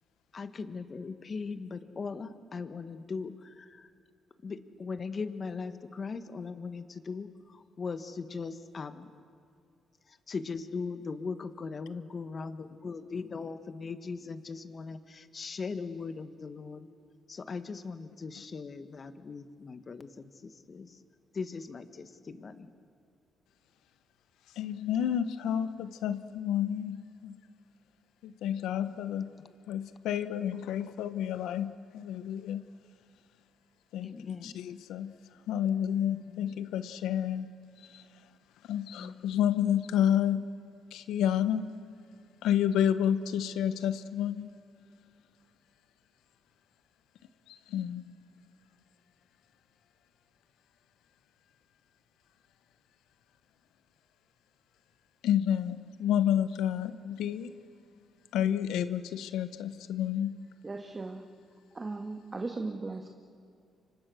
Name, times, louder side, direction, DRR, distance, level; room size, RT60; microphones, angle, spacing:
voice 1, 0.3-3.9 4.4-9.1 10.1-16.9 17.3-21.0 21.3-22.7 28.9-29.0 34.0-34.5 36.3-36.7 39.0-39.4, left 4 dB, 40° left, 1.5 m, -39 dB
voice 2, 24.6-27.4 28.2-29.3 29.7-32.6 33.9-35.1 35.5-37.5 37.9-38.0 38.7-40.4 40.9-41.7 42.4-44.5 47.7-48.0 55.2-57.5 58.3-60.4, left 10 dB, 85° left, 1.1 m, -30 dB
voice 3, 60.6-61.2 61.7-63.1, right 3 dB, 25° right, 1.7 m, -37 dB
29.0 x 25.0 x 6.4 m
cardioid pair, 90°, 0 cm